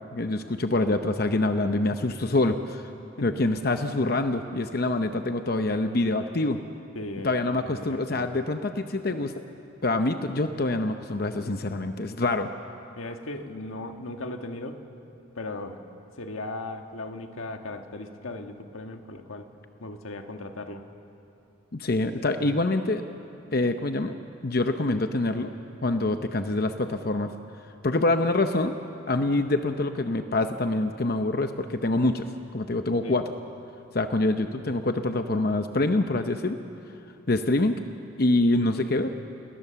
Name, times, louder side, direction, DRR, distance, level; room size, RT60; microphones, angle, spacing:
voice 1, 0.1-2.9 3.2-6.6 7.2-9.3 9.8-12.5 21.7-23.0 23.5-24.1 24.4-25.5 25.8-27.3 27.8-28.8 29.1-32.3 32.5-33.2 33.9-36.6 37.3-37.8 38.2-39.1, left 2 dB, 50° left, 7 dB, 0.8 m, -25 dB
voice 2, 6.9-8.4 13.0-14.8 15.3-15.8 16.1-19.5 19.8-20.9 33.0-33.2, left 2 dB, 90° left, 5 dB, 1.6 m, -37 dB
29.0 x 19.5 x 7.0 m, 2.9 s
head